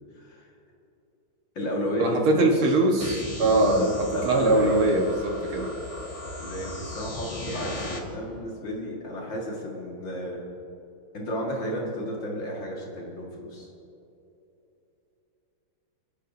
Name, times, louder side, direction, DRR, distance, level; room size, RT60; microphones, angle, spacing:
voice 1, 0.2-0.5 1.6-2.6 3.5-4.9 6.4-10.4 11.1-13.7, equal, 65° left, -2 dB, 2.6 m, -32 dB
voice 2, 2.0-3.9 4.2-5.7, right 2 dB, 80° right, 0 dB, 2.3 m, -22 dB
sound 1, 3.0-8.0, left 2 dB, 25° left, 0.8 m, -37 dB
29.0 x 10.0 x 2.7 m, 2.9 s
omnidirectional pair, 2.3 m